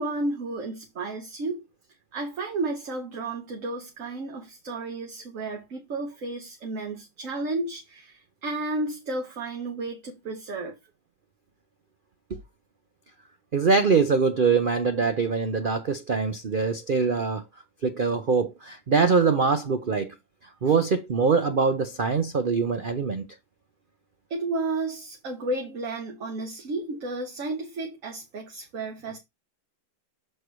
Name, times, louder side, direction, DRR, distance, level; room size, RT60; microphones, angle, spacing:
voice 1, 0.0-1.6 2.1-10.7 24.3-29.2, right 2 dB, 50° right, 1.4 m, -32 dB
voice 2, 13.5-17.4 17.8-20.1 20.6-23.3, right 5 dB, 70° right, 0.4 m, -23 dB
6.5 x 4.5 x 4.6 m
omnidirectional pair, 1.9 m